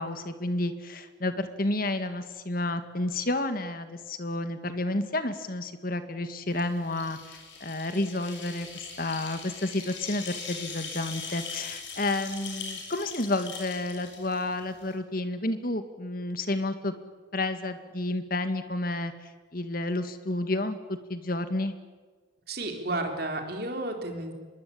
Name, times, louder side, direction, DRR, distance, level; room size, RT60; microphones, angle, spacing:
voice 1, 0.0-16.9 17.3-19.1 19.5-21.8, left 2 dB, 45° left, 9 dB, 1.9 m, -31 dB
sound 1, 6.5-14.9, left 5 dB, 70° left, 6.9 m, -41 dB
voice 2, 22.5-24.3, right 2 dB, 50° right, 4 dB, 3.9 m, -32 dB
25.0 x 21.5 x 8.7 m, 1.4 s
head